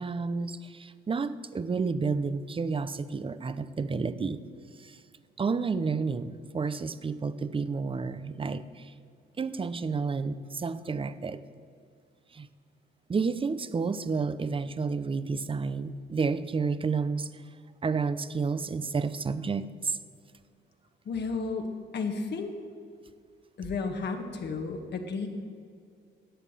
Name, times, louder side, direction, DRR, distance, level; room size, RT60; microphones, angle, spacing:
voice 1, 0.0-4.4 4.8-5.0 5.4-8.9 9.4-11.4 12.3-12.5 13.1-17.3 17.8-20.0, right 4 dB, 25° right, 14 dB, 0.7 m, -30 dB
voice 2, 21.1-21.7 21.9-22.5 23.6-25.3, left 4 dB, 60° left, 4 dB, 1.8 m, -32 dB
11.5 x 8.2 x 9.0 m, 2.3 s
cardioid pair, 90°, 20 cm